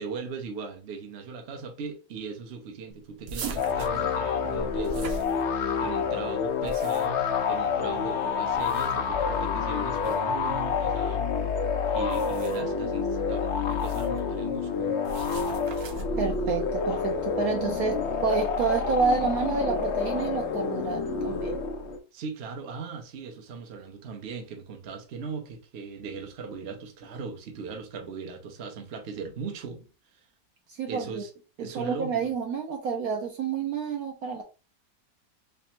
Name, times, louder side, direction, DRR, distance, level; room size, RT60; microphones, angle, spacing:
voice 1, 0.0-5.2 5.8-11.3 11.9-14.9 22.1-30.3 30.9-31.3 31.6-32.3, right 5 dB, 50° right, 0.8 m, -38 dB
sound 1, 3.3-5.9 6.4-7.3 8.4-9.1 9.9-10.2 12.0-12.7 13.7-14.2 15.0-16.2, right 3 dB, 85° right, 0.5 m, -40 dB
sound 2, 3.6-22.0, left 6 dB, 65° left, 0.7 m, -28 dB
voice 2, 16.2-21.6 30.7-31.2 31.6-34.4, right 5 dB, 70° right, 1.0 m, -29 dB
3.4 x 3.2 x 2.9 m
omnidirectional pair, 1.8 m